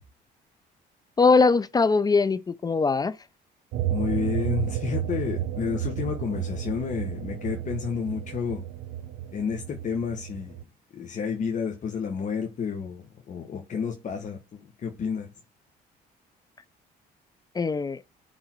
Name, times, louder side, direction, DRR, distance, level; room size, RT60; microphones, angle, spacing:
voice 1, 1.2-3.1 17.6-18.0, left 4 dB, 25° left, 0.5 m, -21 dB
sound 1, 3.7-10.6, right 11 dB, 75° right, 0.8 m, -32 dB
voice 2, 3.9-8.6 9.3-10.6 10.9-15.3, left 6 dB, 45° left, 1.5 m, -31 dB
10.0 x 3.8 x 4.6 m
cardioid pair, 110°, 17 cm